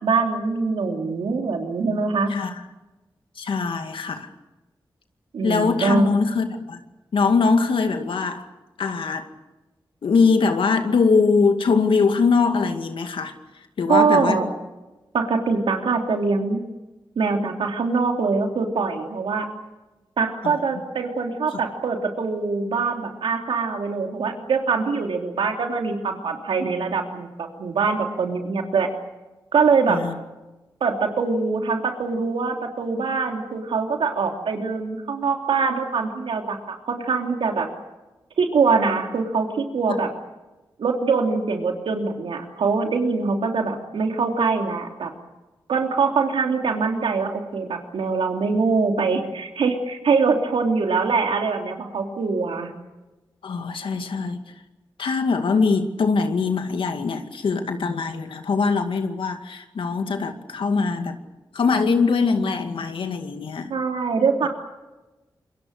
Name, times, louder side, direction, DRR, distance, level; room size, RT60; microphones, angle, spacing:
voice 1, 0.0-2.3 5.3-6.2 13.9-14.5 15.1-16.6 17.1-19.5 20.2-28.9 29.5-30.0 30.8-37.7 38.4-40.1 40.8-45.1 45.7-52.7 63.7-64.5, right 4 dB, 90° right, 3 dB, 3.2 m, -23 dB
voice 2, 3.4-4.3 5.4-6.8 7.1-8.5 8.8-9.3 10.0-13.3 13.8-14.4 20.4-20.6 21.5-21.6 29.9-30.2 53.4-54.4 55.0-61.2 61.5-63.7, left 4 dB, 85° left, 6 dB, 2.2 m, -22 dB
27.0 x 23.0 x 6.7 m, 1.1 s
cardioid pair, 40°, 9 cm